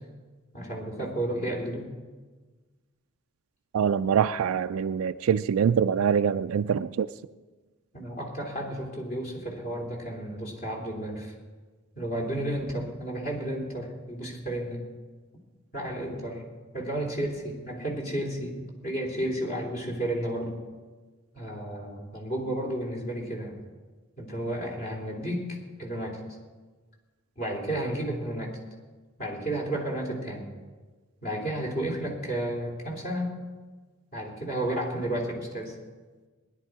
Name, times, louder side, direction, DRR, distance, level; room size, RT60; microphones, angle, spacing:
voice 1, 0.5-1.9 7.9-11.3 11.9-14.8 15.7-16.4 16.7-18.6 18.8-20.6 21.3-23.6 24.2-25.5 25.8-26.2 27.4-28.6 29.2-30.5 31.2-33.3 34.1-35.7, right 1 dB, 40° left, -1 dB, 3.3 m, -32 dB
voice 2, 3.7-7.1, right 7 dB, 80° right, 11 dB, 0.3 m, -24 dB
19.5 x 11.0 x 4.8 m, 1.3 s
head